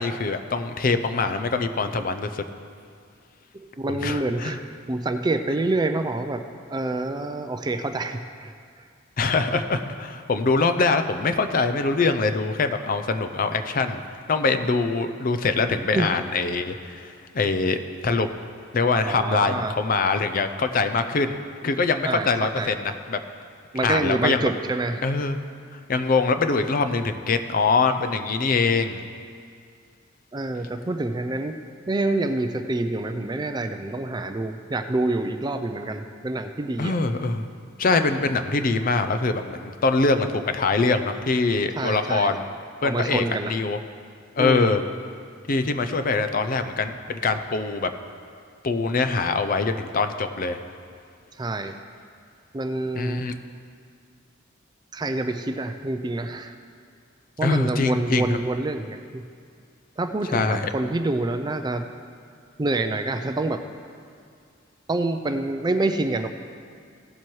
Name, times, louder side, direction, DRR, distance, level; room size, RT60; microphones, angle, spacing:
voice 1, 0.0-2.4 3.9-4.6 9.2-14.0 14.3-18.3 18.7-21.4 21.6-23.2 23.8-24.4 25.0-25.4 25.7-29.0 36.8-37.5 37.8-42.4 42.8-43.8 44.4-44.8 45.5-47.9 48.6-50.6 52.9-53.3 57.4-58.4 60.3-60.6, left 3 dB, 45° left, 9 dB, 0.5 m, -23 dB
voice 2, 3.8-6.4 6.7-8.8 15.9-16.1 19.1-19.7 22.0-22.3 22.6-22.7 23.7-25.0 30.3-31.6 31.9-37.0 41.8-42.4 42.8-43.6 44.4-44.7 51.4-51.8 52.5-53.3 54.9-56.6 57.4-59.2 60.0-61.9 62.6-63.6 64.9-66.3, right 2 dB, 20° right, 7 dB, 0.4 m, -27 dB
17.0 x 7.4 x 3.1 m, 2.2 s
head